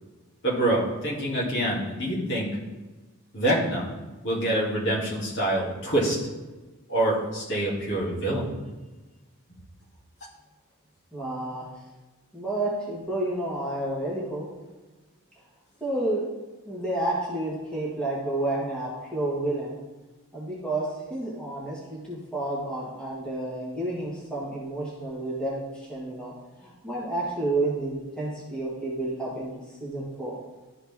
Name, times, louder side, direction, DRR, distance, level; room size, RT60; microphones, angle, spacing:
voice 1, 0.4-2.5 3.3-3.9 4.2-6.2 6.9-8.5, right 1 dB, 60° left, -6 dB, 2.5 m, -26 dB
voice 2, 11.1-11.7 12.3-14.5 15.8-16.2 16.7-19.8 20.3-26.3 26.6-30.4, right 2 dB, 5° left, -7 dB, 1.5 m, -30 dB
12.0 x 4.0 x 3.6 m, 1.2 s
head